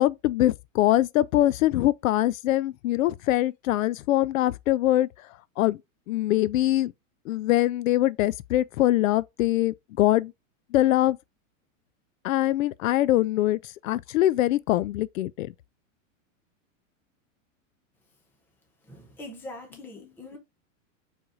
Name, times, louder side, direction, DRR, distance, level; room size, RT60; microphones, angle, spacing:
voice 1, 0.0-5.1 5.6-5.8 6.1-6.9 7.3-10.3 10.7-11.2 12.2-13.6 13.8-15.5, left 14 dB, 80° left, 0.5 m, -23 dB
voice 2, 18.9-20.4, left 2 dB, 5° left, 0.6 m, -42 dB
4.8 x 4.3 x 2.5 m
supercardioid pair, 170°, 39 cm